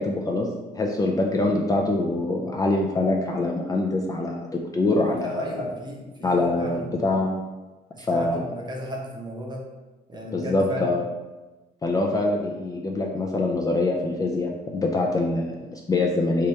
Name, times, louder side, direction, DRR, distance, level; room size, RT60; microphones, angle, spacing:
voice 1, 0.0-5.5 6.2-7.4 8.0-8.4 10.3-11.0 11.8-16.5, left 2 dB, 20° left, 0 dB, 0.3 m, -24 dB
voice 2, 4.9-7.0 7.9-9.6 10.1-10.9, equal, 25° right, -1 dB, 0.7 m, -35 dB
3.4 x 2.8 x 3.2 m, 1.2 s
cardioid pair, 110°, 17 cm